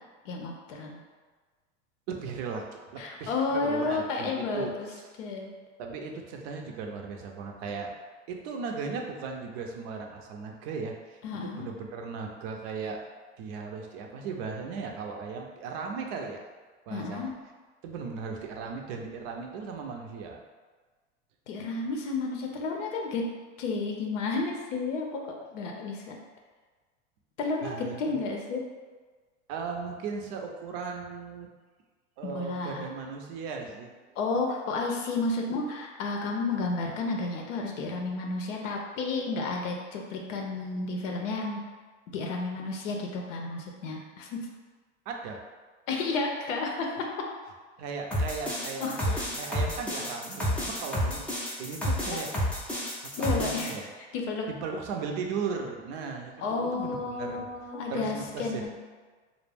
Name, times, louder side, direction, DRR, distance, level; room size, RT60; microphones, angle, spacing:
voice 1, 0.2-1.0 3.0-4.9 5.2-5.5 11.2-11.7 16.9-17.3 21.5-23.2 23.6-26.2 27.4-28.6 32.2-32.9 34.2-41.6 42.1-44.4 45.9-47.3 48.8-49.2 52.1-52.2 53.2-53.9 54.1-54.5 56.4-58.7, left 3 dB, 80° left, 1 dB, 0.6 m, -32 dB
voice 2, 2.1-2.7 2.9-5.0 5.8-7.9 8.3-13.0 13.4-16.4 16.9-17.3 17.8-20.4 27.6-28.4 29.5-31.5 32.2-33.9 45.1-45.4 47.8-52.3 53.0-53.9 54.6-57.5 57.9-58.7, right 5 dB, 55° right, 2 dB, 0.5 m, -37 dB
sound 1, 48.1-53.7, equal, 5° left, 0.4 m, -30 dB
2.4 x 2.0 x 3.3 m, 1.4 s
hypercardioid pair, 110°, 37 cm